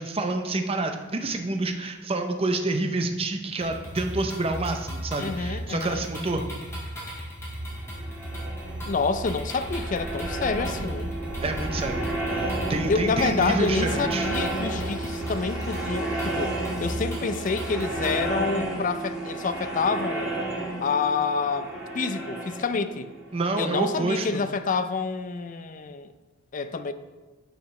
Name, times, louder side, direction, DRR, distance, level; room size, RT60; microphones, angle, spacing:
voice 1, 0.0-6.5 11.4-12.0 12.3-14.3 23.3-24.4, right 2 dB, 30° right, 0.6 m, -28 dB
sound 1, 3.6-18.3, right 1 dB, 15° left, 1.9 m, -36 dB
voice 2, 5.2-6.0 8.9-11.1 12.9-16.6 16.8-20.3 20.8-23.1 23.6-26.1 26.5-26.9, left 4 dB, 40° left, 0.4 m, -28 dB
sound 2, 7.7-24.4, right 2 dB, 5° right, 1.7 m, -32 dB
10.0 x 4.9 x 3.2 m
head